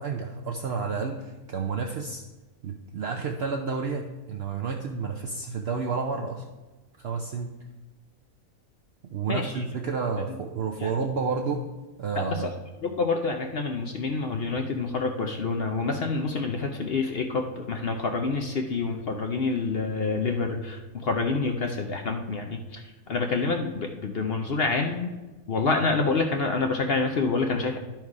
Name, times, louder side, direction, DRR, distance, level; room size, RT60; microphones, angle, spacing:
voice 1, 0.0-2.2 2.6-6.4 7.0-7.5 9.0-11.6 12.0-12.5, right 5 dB, 60° right, 2 dB, 0.7 m, -30 dB
voice 2, 9.3-9.6 10.8-10.9 12.2-12.5 12.8-22.8 23.1-25.1 25.5-27.8, left 4 dB, 55° left, 3 dB, 0.7 m, -27 dB
11.0 x 4.6 x 4.7 m, 1.2 s
omnidirectional pair, 1.5 m